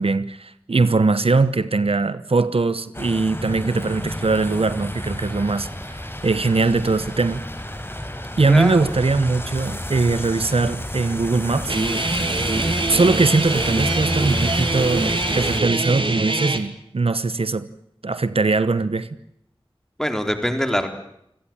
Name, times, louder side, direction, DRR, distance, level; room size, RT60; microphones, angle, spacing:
voice 1, 0.0-7.4 8.4-11.8 12.9-17.7 18.0-19.1, right 3 dB, 80° right, 1.1 m, -21 dB
Road Flare Close Up Cars, 2.9-15.6, left 1 dB, 25° left, 5.2 m, -31 dB
voice 2, 8.5-8.9 20.0-20.9, equal, 5° left, 4.2 m, -23 dB
Guitar, 11.7-16.6, right 2 dB, 60° right, 2.7 m, -23 dB
29.0 x 17.5 x 9.0 m
wide cardioid pair, 45°, 10 cm